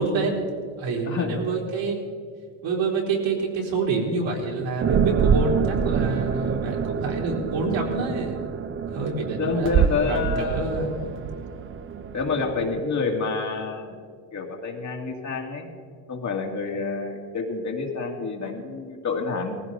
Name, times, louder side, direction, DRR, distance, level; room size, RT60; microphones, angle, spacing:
voice 1, 0.0-2.0 2.6-8.4 8.9-11.0, right 3 dB, 60° right, -1 dB, 4.0 m, -27 dB
sound 1, 4.8-12.8, right 7 dB, 25° right, 0.5 m, -26 dB
voice 2, 9.4-10.7 12.1-13.9 14.3-15.7 16.1-19.6, left 4 dB, 35° left, 1 dB, 2.4 m, -28 dB
18.5 x 15.5 x 4.1 m, 2.1 s
supercardioid pair, 105°, 50 cm